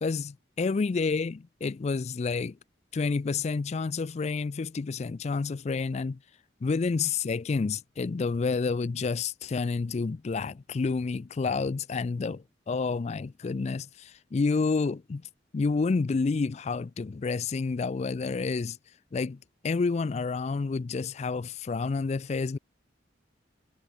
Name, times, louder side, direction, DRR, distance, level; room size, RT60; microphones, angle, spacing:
voice 1, 0.0-2.6 2.9-6.2 6.6-15.2 15.5-18.8 19.1-22.6, left 4 dB, 40° left, 0.4 m, -29 dB
head